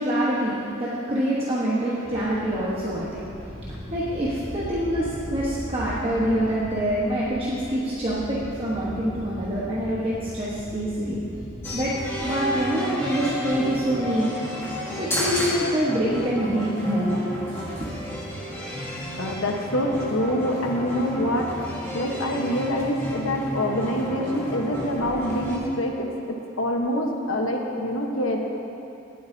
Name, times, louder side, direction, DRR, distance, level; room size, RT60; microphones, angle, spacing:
voice 1, 0.0-11.2 11.7-11.9 12.2-14.3 15.0-17.2 17.8-17.9, right 1 dB, 25° right, -8 dB, 1.2 m, -25 dB
sound 1, 2.0-12.4, equal, 10° right, 1.5 m, -38 dB
sound 2, 11.6-25.6, equal, 10° left, 1.7 m, -32 dB
voice 2, 19.2-21.5 21.9-28.4, equal, 75° left, 1 dB, 1.2 m, -26 dB
18.0 x 8.8 x 2.8 m, 2.8 s
head